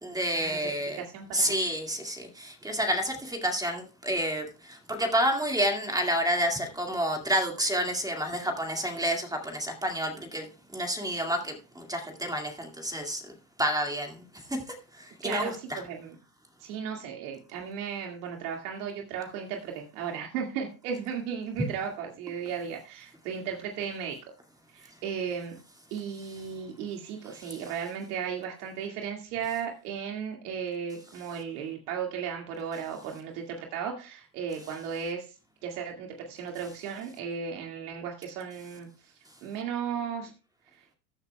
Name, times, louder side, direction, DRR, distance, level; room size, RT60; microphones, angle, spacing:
voice 1, 0.0-1.0 1.3-10.5 10.7-13.3 13.6-15.8 27.4-27.6, equal, 10° right, 2.0 m, -29 dB
voice 2, 1.0-1.7 15.2-16.2 16.6-24.2 24.7-25.6 25.9-35.3 35.6-38.9 39.4-40.3, right 7 dB, 80° right, 2.2 m, -35 dB
15.0 x 10.5 x 2.3 m
supercardioid pair, 115°, 45 cm